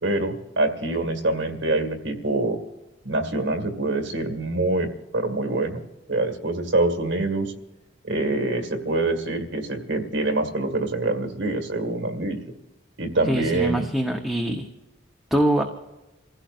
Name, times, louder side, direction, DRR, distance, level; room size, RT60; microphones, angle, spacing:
voice 1, 0.0-2.6 3.0-4.9 5.1-5.8 6.1-7.5 8.0-12.4 13.0-13.9, right 2 dB, 65° right, 5 dB, 1.9 m, -25 dB
voice 2, 13.3-14.7 15.3-15.6, right 1 dB, ahead, 1 dB, 0.9 m, -23 dB
28.5 x 16.0 x 2.6 m, 1.0 s
head